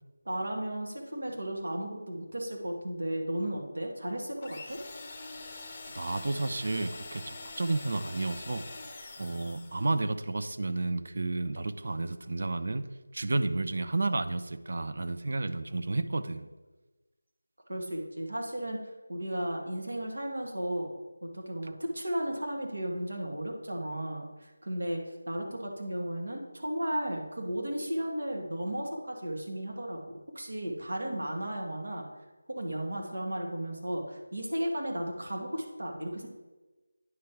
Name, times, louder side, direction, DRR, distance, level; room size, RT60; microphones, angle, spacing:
voice 1, 0.2-4.8 17.7-18.8 19.1-20.9 21.2-32.1 32.5-36.3, right 1 dB, 75° right, 1 dB, 1.7 m, -34 dB
sound 1, 4.4-10.0, left 3 dB, 20° left, 0.7 m, -44 dB
voice 2, 5.9-8.7 9.2-12.8 13.1-16.5, right 2 dB, 45° right, 10 dB, 0.4 m, -31 dB
9.6 x 3.3 x 5.8 m, 1.2 s
figure-of-eight pair, 175°, 0 cm